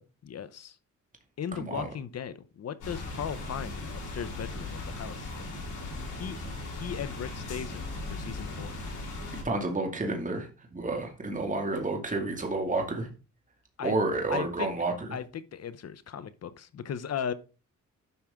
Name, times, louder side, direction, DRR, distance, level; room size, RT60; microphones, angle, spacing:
voice 1, 0.3-0.8 1.4-5.5 6.1-6.4 6.7-8.7 13.8-13.9 14.3-14.7 15.1-17.3, left 8 dB, 55° left, 0.9 m, -37 dB
sound 1, 2.8-9.4, left 2 dB, 85° left, 5.5 m, -38 dB
voice 2, 9.4-13.1 13.8-14.9, right 2 dB, 25° right, 2.4 m, -30 dB
11.0 x 5.9 x 3.7 m
cardioid pair, 95°, 30 cm